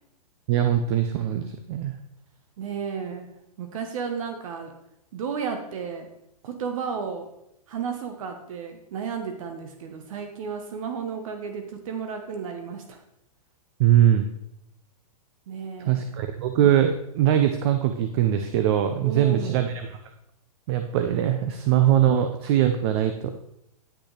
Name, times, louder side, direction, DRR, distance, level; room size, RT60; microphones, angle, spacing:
voice 1, 0.5-1.9 13.8-14.2 15.8-19.7 20.7-23.1, right 11 dB, 45° right, 7 dB, 0.6 m, -21 dB
voice 2, 2.6-3.3 3.6-4.7 5.1-6.1 6.4-7.3 7.7-13.0 15.5-16.1 19.0-19.6, right 6 dB, 60° right, 5 dB, 1.1 m, -33 dB
10.5 x 6.3 x 3.3 m, 0.80 s
hypercardioid pair, 140°, 19 cm